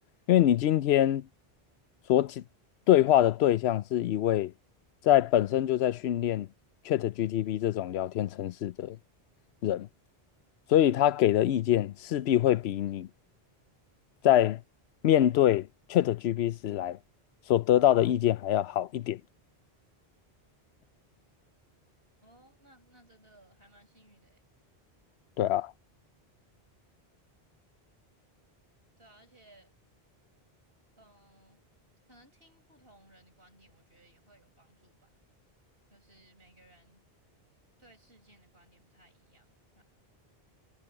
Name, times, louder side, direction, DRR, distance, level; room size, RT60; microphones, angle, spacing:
voice 1, 0.3-1.3 2.1-2.4 2.9-4.5 5.0-6.5 6.9-9.0 9.6-9.9 10.7-13.1 14.2-14.6 15.0-17.0 17.5-19.2 25.4-25.7, left 12 dB, 90° left, 0.8 m, -24 dB
voice 2, 22.2-24.4 29.0-29.7 31.0-31.6 32.1-35.1 35.9-37.0 37.8-39.8, right 1 dB, 65° right, 8.1 m, -61 dB
omnidirectional pair, 1.1 m